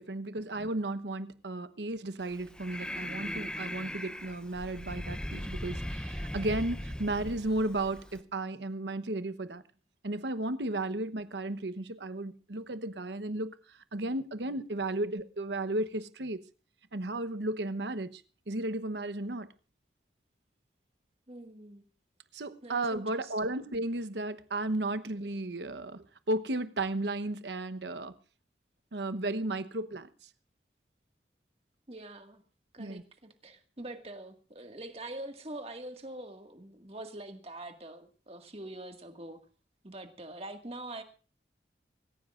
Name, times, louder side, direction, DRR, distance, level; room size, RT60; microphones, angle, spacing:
voice 1, 0.0-9.6 10.0-16.4 16.9-19.5 22.3-28.1 28.9-30.1 32.8-33.0, right 2 dB, 85° right, 1.0 m, -34 dB
Breathing, 2.2-8.2, equal, 5° left, 0.7 m, -39 dB
voice 2, 21.3-21.8 22.6-23.5 31.9-32.4 32.7-39.4 39.8-41.0, right 1 dB, 35° right, 1.9 m, -44 dB
25.5 x 15.0 x 2.5 m
head